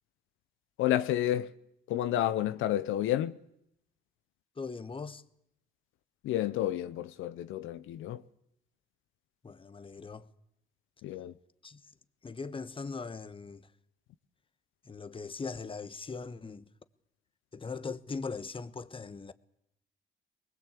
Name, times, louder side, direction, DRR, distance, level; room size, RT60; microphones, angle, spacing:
voice 1, 0.8-1.5 1.9-3.3 6.2-8.2 11.0-11.3, left 12 dB, 85° left, 0.8 m, -30 dB
voice 2, 4.6-5.2 9.4-10.3 11.6-11.9 12.2-13.7 14.8-16.7 17.5-19.3, left 4 dB, 25° left, 1.2 m, -40 dB
23.5 x 20.0 x 8.5 m
cardioid pair, 90°, 20 cm